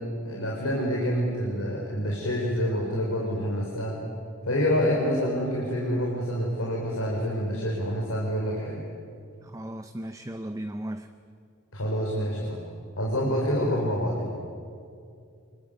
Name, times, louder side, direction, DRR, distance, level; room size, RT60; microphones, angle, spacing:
voice 1, 0.0-4.0 4.4-8.8 11.7-12.6 13.0-14.3, equal, 80° left, -2 dB, 4.4 m, -27 dB
voice 2, 9.4-11.1, right 1 dB, 15° right, 8 dB, 0.7 m, -36 dB
26.0 x 22.5 x 9.1 m, 2.4 s
head